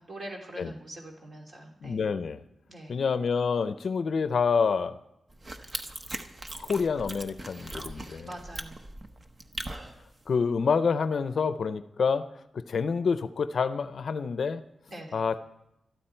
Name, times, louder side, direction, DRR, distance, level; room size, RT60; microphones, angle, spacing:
voice 1, 0.0-2.0 2.7-3.0 8.2-8.8 14.9-15.2, right 1 dB, 45° right, 0 dB, 2.8 m, -43 dB
voice 2, 1.8-2.4 2.9-5.0 6.6-8.3 10.3-12.2 12.5-14.6 15.1-15.4, left 5 dB, 55° left, 12 dB, 0.6 m, -27 dB
sound 1, 5.3-10.3, right 1 dB, 30° right, 0.9 m, -40 dB
22.0 x 13.0 x 4.5 m, 0.87 s
wide cardioid pair, 165°, 0 cm